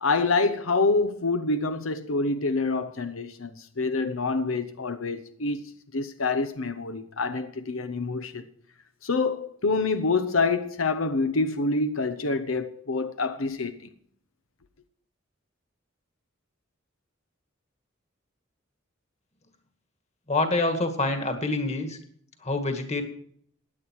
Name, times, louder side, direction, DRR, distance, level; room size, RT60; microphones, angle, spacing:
voice 1, 0.0-8.4 9.0-13.8, left 3 dB, 85° left, 0.9 m, -26 dB
voice 2, 20.3-22.0 22.4-23.0, left 2 dB, 35° left, 2.0 m, -26 dB
16.0 x 10.0 x 4.7 m
head